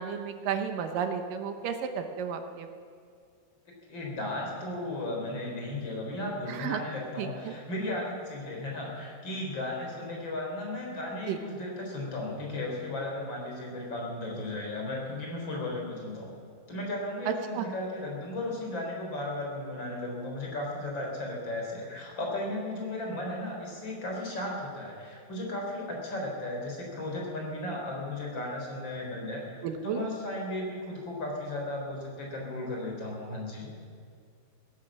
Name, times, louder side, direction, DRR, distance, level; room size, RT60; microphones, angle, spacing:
voice 1, 0.0-2.7 6.5-6.8 7.2-7.6 11.3-11.4 17.3-17.7 29.6-30.0, right 7 dB, 70° right, 6 dB, 2.2 m, -32 dB
voice 2, 3.9-16.3 16.7-33.7, left 1 dB, 30° left, -1 dB, 3.9 m, -35 dB
16.5 x 11.5 x 7.4 m, 2.3 s
omnidirectional pair, 4.8 m